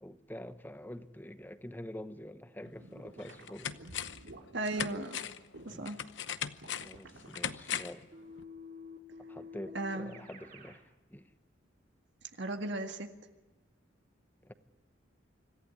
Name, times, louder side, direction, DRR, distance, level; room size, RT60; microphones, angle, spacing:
voice 1, 0.0-3.7 5.7-5.9 6.8-8.1 9.3-10.8 11.1-11.3 14.4-14.5, left 1 dB, 10° left, 0.9 m, -46 dB
sound 1, 2.7-2.8 3.2-4.3 4.6-8.1 8.4-8.5, left 8 dB, 65° left, 0.9 m, -39 dB
sound 2, 2.8-5.9 6.5-7.8, right 2 dB, 85° right, 2.6 m, -52 dB
voice 2, 4.5-5.2 5.7-6.0 9.7-10.1 12.4-13.1, right 2 dB, 65° right, 1.8 m, -36 dB
Keyboard (musical), 8.1-10.8, left 4 dB, 45° right, 3.7 m, -49 dB
26.0 x 15.0 x 9.5 m
head